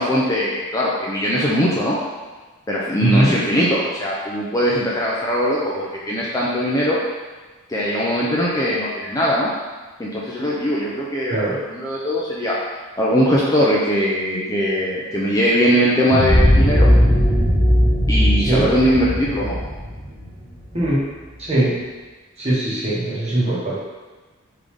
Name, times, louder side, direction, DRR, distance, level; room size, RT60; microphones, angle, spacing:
voice 1, 0.0-2.0 2.7-7.0 7.7-9.5 10.0-12.6 13.0-16.9 18.1-19.6, equal, 15° left, -5 dB, 0.5 m, -20 dB
voice 2, 3.0-3.3 11.3-11.6 18.5-18.6 20.7-21.0 21.4-21.7 22.4-23.8, right 1 dB, 30° right, -7 dB, 1.1 m, -20 dB
sound 1, 16.1-20.9, equal, 5° right, 1.0 m, -17 dB
3.8 x 3.2 x 3.5 m, 1.3 s
head